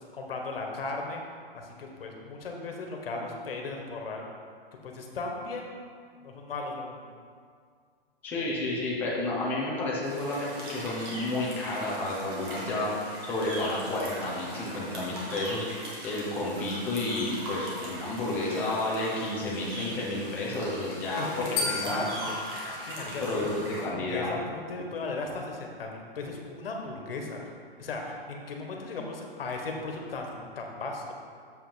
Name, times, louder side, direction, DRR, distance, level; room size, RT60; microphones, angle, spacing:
voice 1, 0.1-1.2 1.5-4.2 4.8-5.7 6.2-7.1 21.2-22.4 22.7-23.4 23.8-27.5 27.8-31.1, left 3 dB, 65° left, 2 dB, 1.5 m, -36 dB
voice 2, 8.2-22.1 23.2-24.4 24.8-24.9, left 2 dB, 5° left, -6 dB, 0.6 m, -31 dB
sound 1, 10.0-23.8, right 1 dB, 25° right, 1.4 m, -40 dB
sound 2, 21.6-23.8, left 4 dB, 20° left, 1.1 m, -35 dB
7.2 x 5.5 x 5.1 m, 2.1 s
hypercardioid pair, 175°, 30 cm